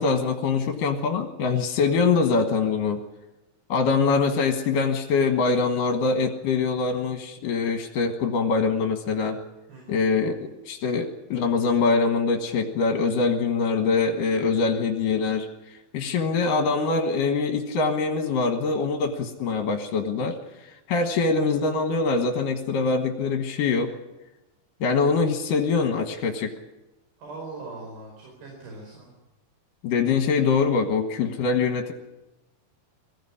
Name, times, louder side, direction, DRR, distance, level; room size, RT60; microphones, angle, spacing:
voice 1, 0.0-3.0 3.7-9.4 9.9-23.9 24.8-26.5 29.8-31.9, left 4 dB, 70° left, 4 dB, 3.0 m, -24 dB
voice 2, 9.7-10.0 27.2-29.1, right 3 dB, 85° right, -1 dB, 6.8 m, -40 dB
23.0 x 15.5 x 10.0 m, 1.0 s
omnidirectional pair, 4.2 m